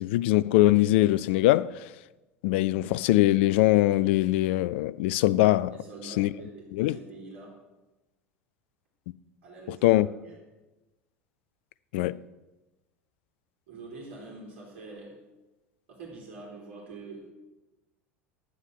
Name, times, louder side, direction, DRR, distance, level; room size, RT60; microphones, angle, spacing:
voice 1, 0.0-1.9 2.4-5.7 6.1-6.3 6.7-7.0 9.7-10.1 11.9-12.2, left 16 dB, 55° left, 0.4 m, -22 dB
voice 2, 5.7-7.5 9.4-10.4 13.7-15.1 15.9-17.2, right 3 dB, 55° right, 3.5 m, -45 dB
11.5 x 9.4 x 6.2 m
figure-of-eight pair, 75°, 7 cm